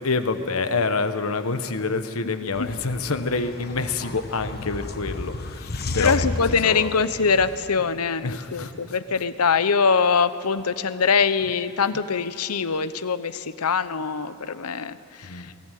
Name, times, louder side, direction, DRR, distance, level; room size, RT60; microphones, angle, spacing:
voice 1, 0.0-6.3 6.6-6.9 8.2-9.0 15.2-15.6, left 4 dB, 70° left, 9 dB, 1.3 m, -27 dB
sound 1, 2.5-7.6, left 2 dB, 45° left, 1.2 m, -33 dB
voice 2, 6.0-15.5, left 5 dB, 85° left, 14 dB, 0.8 m, -23 dB
22.0 x 18.0 x 9.2 m, 2.6 s
head